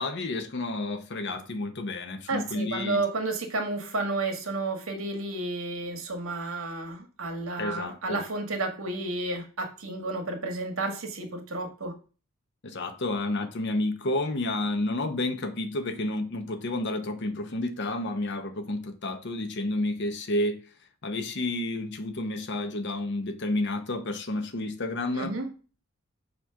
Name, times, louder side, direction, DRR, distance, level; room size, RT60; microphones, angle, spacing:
voice 1, 0.0-3.0 7.6-8.2 12.6-20.6 21.0-25.3, left 2 dB, 55° left, 0.9 m, -30 dB
voice 2, 2.3-11.9 25.1-25.4, right 2 dB, 85° right, 1.5 m, -31 dB
6.9 x 3.0 x 5.6 m
head